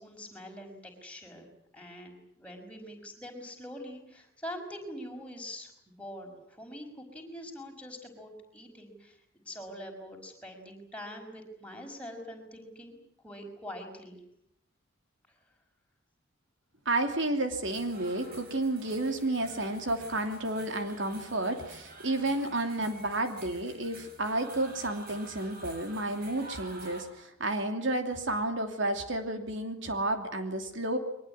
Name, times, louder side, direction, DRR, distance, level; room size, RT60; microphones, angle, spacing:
voice 1, 0.0-1.5 1.7-13.0 13.2-14.2, equal, 5° left, 1 dB, 5.6 m, -44 dB
voice 2, 16.8-31.0, right 2 dB, 65° right, 6 dB, 2.9 m, -31 dB
sound 1, 17.6-27.0, right 2 dB, 45° right, 7.9 m, -49 dB
23.5 x 21.0 x 9.8 m, 0.77 s
head